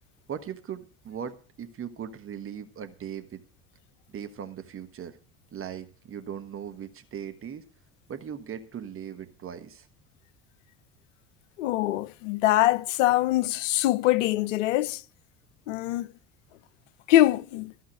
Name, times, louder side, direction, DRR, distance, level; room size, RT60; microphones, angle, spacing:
voice 1, 0.3-3.4 4.1-5.2 5.5-7.7 8.1-9.9, right 8 dB, 30° right, 1.3 m, -39 dB
voice 2, 11.6-15.0 15.7-16.1 17.1-17.7, left 15 dB, 60° left, 0.7 m, -23 dB
14.5 x 5.8 x 7.6 m
figure-of-eight pair, 65°, 42 cm